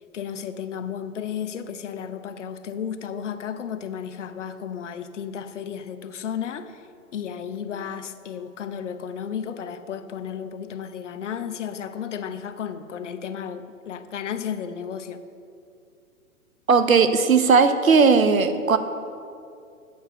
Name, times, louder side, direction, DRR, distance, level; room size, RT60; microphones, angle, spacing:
voice 1, 0.1-6.8 7.1-15.2, left 8 dB, 60° left, 10 dB, 0.9 m, -33 dB
voice 2, 16.7-18.8, right 5 dB, 75° right, 10 dB, 1.0 m, -17 dB
11.0 x 8.1 x 6.4 m, 2.5 s
figure-of-eight pair, 120°, 42 cm